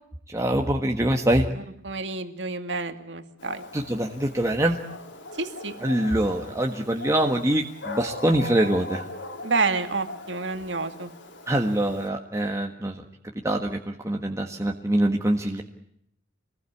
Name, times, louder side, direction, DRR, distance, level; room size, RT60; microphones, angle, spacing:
voice 1, 0.3-1.5 3.7-4.8 5.8-9.0 11.5-13.0 13.4-15.6, right 1 dB, 15° right, 2 dB, 1.6 m, -24 dB
voice 2, 1.6-3.6 5.4-5.7 9.4-11.1, right 3 dB, 65° right, 8 dB, 2.4 m, -29 dB
Dog, 3.4-12.1, left 2 dB, 75° left, 4.2 m, -40 dB
26.5 x 20.0 x 8.5 m, 0.73 s
head